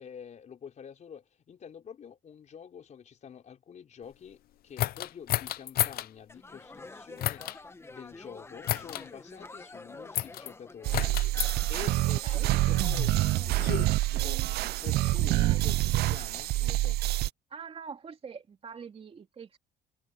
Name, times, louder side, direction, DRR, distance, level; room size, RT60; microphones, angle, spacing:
voice 1, 0.0-7.6 7.8-11.1 11.7-17.0, left 7 dB, 45° left, 4.3 m, -47 dB
sound 1, 4.8-6.1 7.2-7.6 8.6-9.0 10.1-10.5 10.9-11.5 12.4-13.9, left 14 dB, 60° left, 0.6 m, -32 dB
sound 2, 6.3-13.8, left 3 dB, 15° left, 1.4 m, -48 dB
sound 3, 10.8-17.3, right 17 dB, 70° right, 0.4 m, -27 dB
voice 2, 15.2-15.7 17.5-19.6, right 6 dB, 35° right, 2.6 m, -45 dB
cardioid pair, 110°, 17 cm